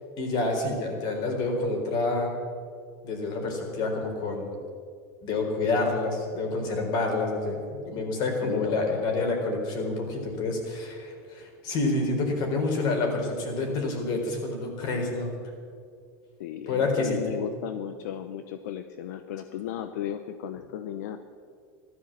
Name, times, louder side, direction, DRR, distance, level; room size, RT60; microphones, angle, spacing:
voice 1, 0.2-2.4 3.0-4.6 5.2-15.3 16.7-17.5, left 3 dB, 50° left, 2 dB, 4.2 m, -28 dB
voice 2, 8.4-9.0 16.4-21.2, left 10 dB, 80° left, 8 dB, 0.8 m, -35 dB
14.5 x 12.5 x 7.5 m, 2.2 s
supercardioid pair, 130°, 9 cm